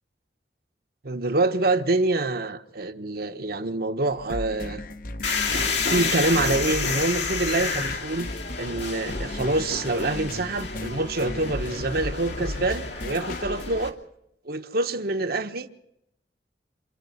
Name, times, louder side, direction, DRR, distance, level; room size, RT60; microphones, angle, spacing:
voice 1, 1.0-4.8 5.8-8.3 8.6-14.0 14.4-15.7, right 2 dB, 60° right, 1.2 m, -26 dB
sound 1, 4.1-13.8, left 1 dB, 50° left, 1.0 m, -36 dB
sound 2, 5.2-13.9, left 4 dB, 75° left, 2.7 m, -30 dB
27.0 x 11.5 x 9.4 m
head